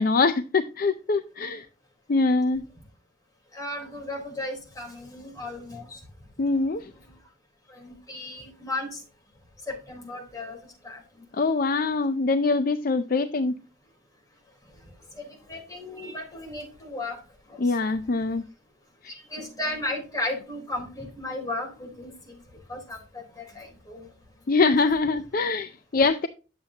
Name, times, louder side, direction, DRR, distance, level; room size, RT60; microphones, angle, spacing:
voice 1, 0.0-1.7 2.1-2.6 6.4-6.9 11.3-13.6 17.6-18.4 19.0-19.1 24.5-26.3, left 3 dB, 45° left, 0.5 m, -23 dB
voice 2, 3.5-6.0 7.7-9.0 9.7-10.6 10.8-11.0 15.2-17.2 17.7-17.8 19.3-22.3 22.7-24.1 24.6-24.9, left 2 dB, 15° left, 3.8 m, -35 dB
10.5 x 7.3 x 2.8 m
head